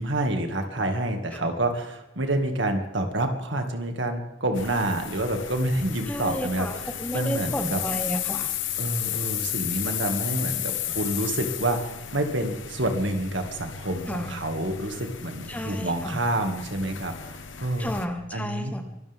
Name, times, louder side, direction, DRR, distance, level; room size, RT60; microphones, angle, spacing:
voice 1, 0.0-7.8 8.8-17.9 18.3-18.7, right 1 dB, 65° right, 5 dB, 2.3 m, -28 dB
sound 1, 4.5-18.0, left 10 dB, 70° left, 1.3 m, -34 dB
voice 2, 6.1-6.7 7.0-8.5 14.1-14.3 15.5-16.2 17.8-18.8, equal, 5° left, 5 dB, 1.3 m, -32 dB
24.0 x 13.5 x 3.7 m, 0.98 s
head